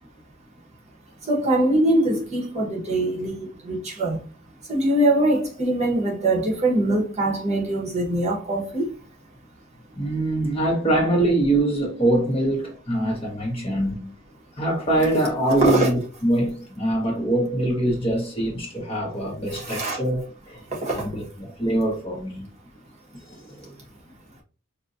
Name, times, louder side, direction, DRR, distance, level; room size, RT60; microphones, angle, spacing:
voice 1, 1.2-4.2 4.7-8.9 15.4-15.9 19.5-20.0 20.7-21.1, right 1 dB, 35° right, 1.2 m, -23 dB
voice 2, 9.9-14.2 14.6-20.6 20.9-22.5 23.3-23.7, right 1 dB, 25° left, 1.2 m, -24 dB
5.2 x 2.6 x 2.6 m
head